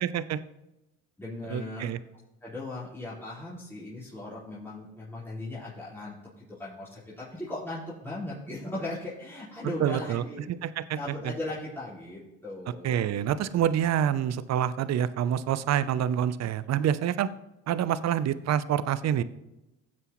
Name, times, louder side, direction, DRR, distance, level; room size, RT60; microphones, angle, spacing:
voice 1, 0.0-0.4 1.5-2.0 9.8-11.0 11.2-11.3 12.8-17.3 17.7-19.2, right 10 dB, 50° right, 16 dB, 0.6 m, -27 dB
voice 2, 1.2-1.9 2.4-10.5 10.9-13.1, left 1 dB, 5° left, -9 dB, 4.2 m, -38 dB
15.5 x 7.7 x 3.1 m, 0.94 s
supercardioid pair, 80°, 35 cm